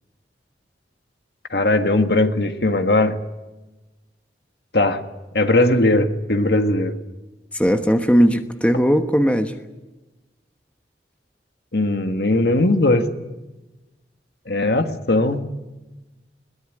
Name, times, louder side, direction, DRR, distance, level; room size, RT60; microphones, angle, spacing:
voice 1, 1.5-3.2 4.7-5.0 5.3-6.9 11.7-13.1 14.5-15.4, left 2 dB, 65° left, 7 dB, 1.8 m, -19 dB
voice 2, 7.5-9.5, equal, 5° left, 7 dB, 1.2 m, -18 dB
21.5 x 18.5 x 10.0 m, 1.1 s
head